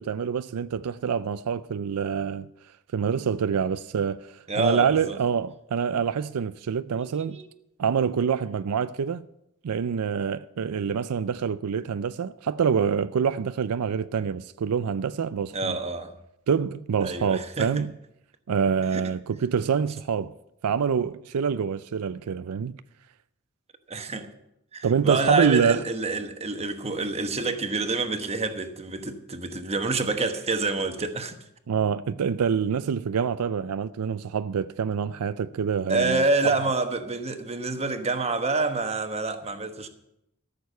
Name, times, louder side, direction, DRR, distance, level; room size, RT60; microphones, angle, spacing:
voice 1, 0.0-2.5 2.9-7.4 7.8-9.2 9.6-15.8 16.5-17.9 18.5-20.3 20.6-22.8 24.8-25.8 31.7-36.2, right 6 dB, 90° right, 0.4 m, -26 dB
voice 2, 4.5-5.2 7.1-7.5 15.5-16.1 17.0-17.8 18.9-19.0 23.9-24.3 24.7-31.4 35.9-39.9, right 3 dB, 30° right, 1.1 m, -27 dB
14.0 x 6.8 x 8.1 m
head